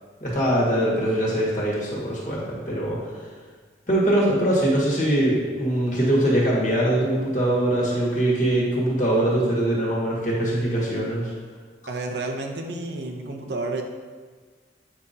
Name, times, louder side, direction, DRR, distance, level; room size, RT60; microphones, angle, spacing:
voice 1, 0.2-3.1 3.9-11.3, right 1 dB, 40° left, -5 dB, 1.8 m, -22 dB
voice 2, 11.9-13.8, right 2 dB, 70° right, 3 dB, 0.7 m, -30 dB
8.7 x 5.1 x 2.8 m, 1.5 s
head